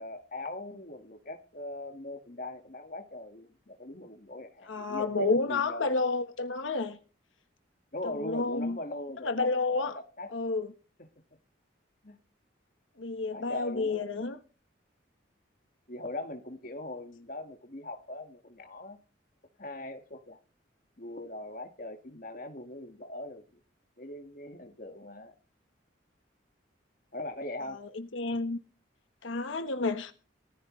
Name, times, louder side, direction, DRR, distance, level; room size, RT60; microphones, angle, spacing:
voice 1, 0.0-6.0 7.9-10.3 12.0-12.2 13.3-14.1 15.9-19.0 19.6-20.4 21.0-23.6 24.0-25.3 27.1-27.8 28.5-28.6, left 2 dB, 45° left, 1.8 m, -41 dB
voice 2, 4.7-7.0 8.0-8.8 9.2-10.0 10.3-10.7 13.0-14.4 27.8-28.6 29.2-30.1, left 3 dB, 85° left, 1.2 m, -30 dB
18.5 x 14.5 x 3.2 m
head